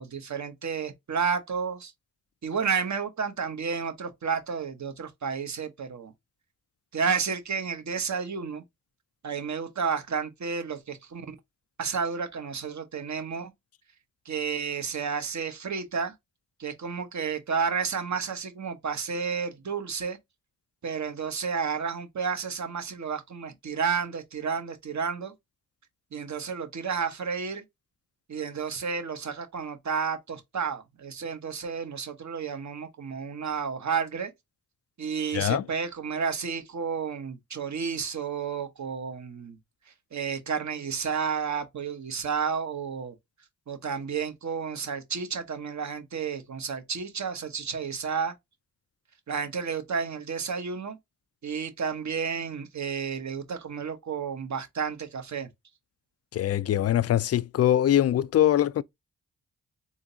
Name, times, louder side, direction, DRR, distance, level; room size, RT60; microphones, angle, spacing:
voice 1, 0.0-1.9 2.4-6.1 6.9-8.6 9.2-11.3 11.8-13.5 14.2-16.1 16.6-20.2 20.8-25.3 26.1-27.6 28.3-34.3 35.0-39.6 40.1-43.1 43.7-48.3 49.3-51.0 51.4-55.5, right 6 dB, 50° right, 1.2 m, -31 dB
voice 2, 35.3-35.6 56.3-58.8, left 12 dB, 45° left, 0.4 m, -23 dB
3.7 x 2.6 x 2.7 m
supercardioid pair, 40°, 36 cm